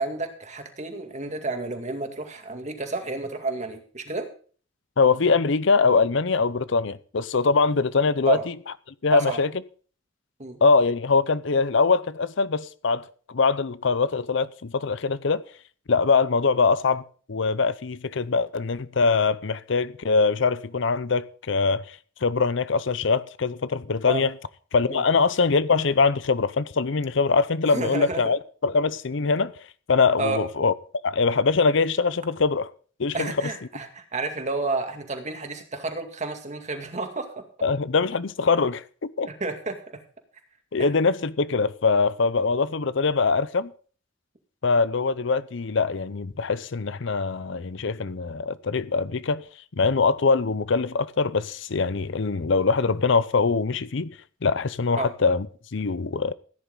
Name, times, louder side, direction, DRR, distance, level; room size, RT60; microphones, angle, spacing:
voice 1, 0.0-4.3 8.3-8.4 9.1-9.4 10.4-10.6 24.1-24.3 24.9-25.0 27.7-28.3 30.2-30.4 33.1-37.4 39.3-39.8 40.8-40.9 54.9-55.1, right 3 dB, 40° right, 2.2 m, -30 dB
voice 2, 5.0-8.5 9.0-9.5 10.6-15.4 15.9-17.0 17.3-21.9 22.2-24.3 24.7-29.5 29.9-30.7 31.0-32.7 33.0-33.3 37.6-39.3 40.7-43.7 44.6-49.4 49.8-54.1 54.4-55.5 55.7-56.3, left 4 dB, 70° left, 0.7 m, -23 dB
16.0 x 10.0 x 3.9 m
head